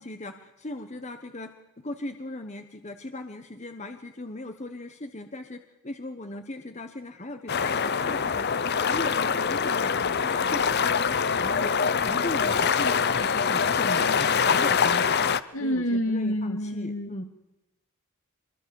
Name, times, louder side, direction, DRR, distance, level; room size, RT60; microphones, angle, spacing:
voice 1, 0.0-9.9 10.2-11.7 12.0-15.2 15.6-17.2, left 1 dB, 30° left, 7 dB, 1.3 m, -38 dB
sound 1, 7.5-15.4, left 6 dB, 50° left, 0.7 m, -24 dB
voice 2, 15.5-17.2, equal, 65° left, 7 dB, 2.2 m, -28 dB
24.5 x 22.5 x 7.1 m, 0.96 s
head